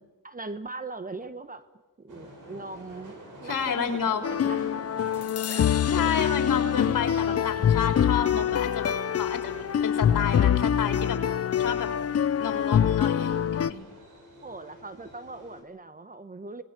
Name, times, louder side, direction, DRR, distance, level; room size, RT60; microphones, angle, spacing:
voice 1, 0.2-1.6 2.0-4.8 5.5-6.2 14.4-16.6, right 3 dB, 20° right, 12 dB, 1.2 m, -40 dB
sound 1, 2.1-15.6, right 1 dB, 55° right, 6.9 m, -48 dB
voice 2, 3.4-4.4 5.9-11.2 11.6-11.9 12.4-13.8, left 7 dB, 60° left, 4 dB, 3.9 m, -30 dB
sound 2, 4.2-13.7, left 9 dB, 40° left, 0.7 m, -25 dB
26.5 x 20.0 x 6.1 m, 1.2 s
cardioid pair, 90°, 37 cm